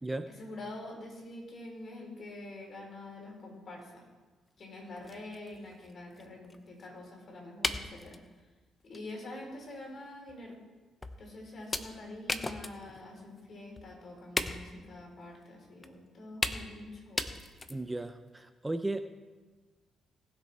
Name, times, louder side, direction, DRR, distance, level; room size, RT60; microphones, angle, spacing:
voice 1, 0.3-4.1 4.6-8.2 8.8-10.6 11.2-17.3, left 2 dB, 50° left, 0 dB, 4.1 m, -46 dB
sound 1, 4.6-4.7 5.0-6.9 7.6-8.3 8.9-9.1 9.5-9.6 10.3-10.4 11.0-11.3 11.7-13.1 13.4-13.5 13.8-13.9 14.4-14.9 15.8-15.9 16.4-16.8 17.2-17.9, left 2 dB, 20° left, 0.8 m, -36 dB
voice 2, 17.7-19.0, right 2 dB, 15° right, 9 dB, 0.6 m, -35 dB
19.0 x 6.9 x 4.4 m, 1.3 s
cardioid pair, 90°, 0 cm